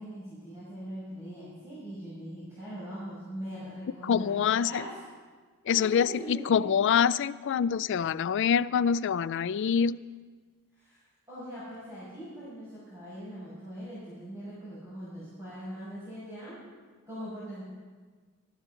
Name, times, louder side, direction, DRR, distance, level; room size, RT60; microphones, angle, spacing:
voice 1, 0.0-5.0 5.7-6.5 7.6-7.7 10.7-11.0 11.3-16.6 17.1-17.6, equal, 15° right, -12 dB, 5.6 m, -41 dB
voice 2, 4.0-4.8 5.7-10.0, left 7 dB, 60° left, 17 dB, 0.3 m, -25 dB
20.5 x 13.5 x 3.8 m, 1.5 s
head